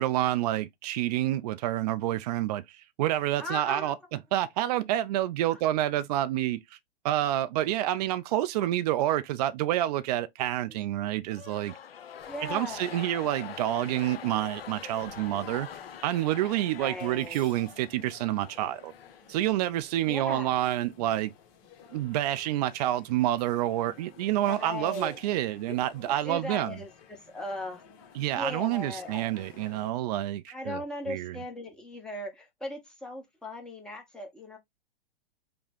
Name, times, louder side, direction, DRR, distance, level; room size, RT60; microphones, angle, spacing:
voice 1, 0.0-2.6 3.0-3.9 4.3-6.6 7.0-11.7 12.5-15.7 16.0-18.9 19.3-21.3 21.9-26.8 28.2-30.8 31.1-31.4, right 13 dB, 40° right, 0.5 m, -28 dB
voice 2, 3.4-3.9 5.5-5.6 12.3-12.9 16.8-17.5 20.1-20.6 24.5-25.2 25.7-25.8 26.1-27.8 28.2-29.4 30.5-34.6, left 1 dB, ahead, 1.1 m, -38 dB
sound 1, 11.2-19.7, left 8 dB, 70° left, 0.6 m, -45 dB
sound 2, 12.2-29.9, left 7 dB, 35° left, 1.2 m, -54 dB
5.1 x 2.3 x 4.2 m
figure-of-eight pair, 110°, 30 cm